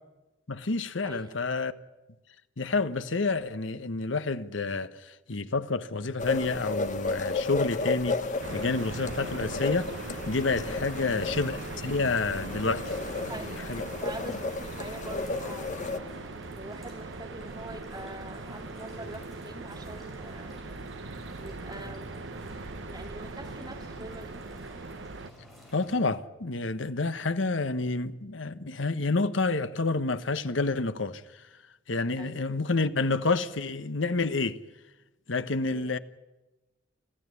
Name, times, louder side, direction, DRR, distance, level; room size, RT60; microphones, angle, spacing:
voice 1, 0.5-1.7 2.6-9.9 10.3-12.9 13.4-13.8 25.7-31.2 31.9-34.6 35.3-36.0, left 3 dB, 85° left, 1.2 m, -29 dB
voice 2, 1.0-1.4 10.9-11.3 13.1-15.7 16.6-20.6 21.4-22.2 22.9-24.5 32.2-32.5 35.7-35.9, right 1 dB, 25° right, 2.2 m, -44 dB
sound 1, 6.2-16.0, left 3 dB, 40° left, 1.2 m, -33 dB
sound 2, 6.2-26.0, equal, ahead, 6.8 m, -50 dB
sound 3, 8.4-25.3, right 3 dB, 70° right, 1.0 m, -40 dB
26.0 x 15.0 x 9.7 m
head